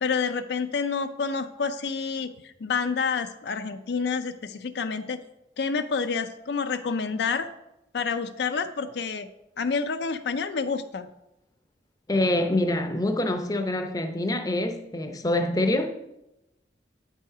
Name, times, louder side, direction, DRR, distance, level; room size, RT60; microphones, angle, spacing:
voice 1, 0.0-5.2 5.6-7.5 7.9-9.3 9.6-11.1, left 5 dB, 65° left, 0.4 m, -28 dB
voice 2, 12.1-15.9, left 1 dB, 20° left, 0.6 m, -25 dB
8.8 x 5.6 x 4.9 m
head